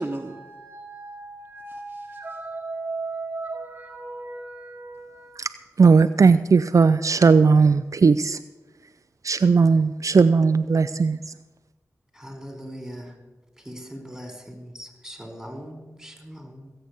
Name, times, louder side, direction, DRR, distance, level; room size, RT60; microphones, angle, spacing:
voice 1, 0.0-5.3, right 3 dB, 30° right, 2 dB, 1.5 m, -35 dB
voice 2, 5.8-8.4 9.2-11.2, right 5 dB, 60° right, 11 dB, 0.5 m, -17 dB
voice 3, 12.1-13.2 13.6-16.7, equal, 5° right, 5 dB, 4.5 m, -40 dB
17.5 x 8.0 x 8.1 m, 1.2 s
cardioid pair, 45°, 6 cm